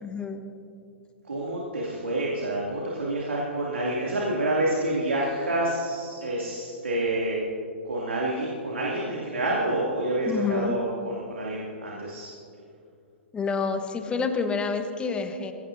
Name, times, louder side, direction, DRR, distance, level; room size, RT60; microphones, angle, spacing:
voice 1, 0.0-0.4 10.3-10.8 13.3-15.5, left 5 dB, 15° left, 7 dB, 1.2 m, -28 dB
voice 2, 1.2-7.4 7.8-12.3, right 1 dB, 75° right, -5 dB, 2.8 m, -28 dB
22.0 x 17.0 x 2.8 m, 2.5 s
figure-of-eight pair, 115°, 7 cm